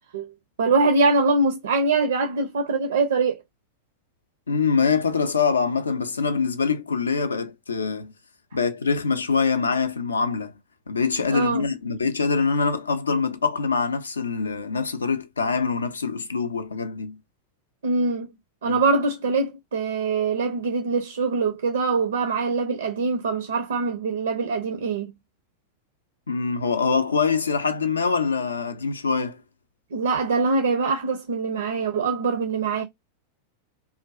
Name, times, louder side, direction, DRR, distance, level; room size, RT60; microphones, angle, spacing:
voice 1, 0.6-3.4 11.3-11.7 17.8-18.3 18.6-25.1 29.9-32.8, right 3 dB, 65° right, 0.4 m, -23 dB
voice 2, 4.5-8.1 8.5-10.5 10.9-17.2 18.6-18.8 26.3-29.4, left 5 dB, 75° left, 0.4 m, -24 dB
2.4 x 2.3 x 2.2 m
figure-of-eight pair, 90°, 0 cm